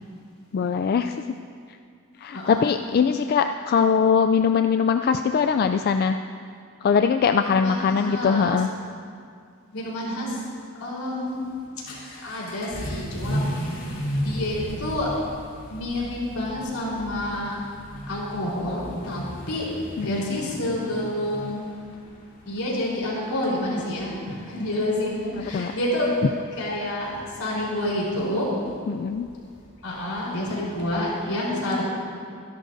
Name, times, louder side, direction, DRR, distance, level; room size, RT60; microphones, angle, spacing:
voice 1, 0.5-1.2 2.2-6.2 6.8-8.7 20.0-20.4 25.4-25.7 28.9-29.3, left 6 dB, 45° left, 7 dB, 0.3 m, -22 dB
voice 2, 2.1-2.6 7.4-8.6 9.7-10.4 10.8-11.5 12.2-13.5 14.2-15.1 15.7-17.6 18.1-19.7 20.0-21.7 22.5-26.3 26.6-28.5 29.8-31.8, left 1 dB, 80° left, -4 dB, 4.0 m, -28 dB
Vehicle / Accelerating revving vroom, 11.3-31.1, equal, 60° left, 3.0 m, -36 dB
25.0 x 11.5 x 2.7 m, 2.2 s
head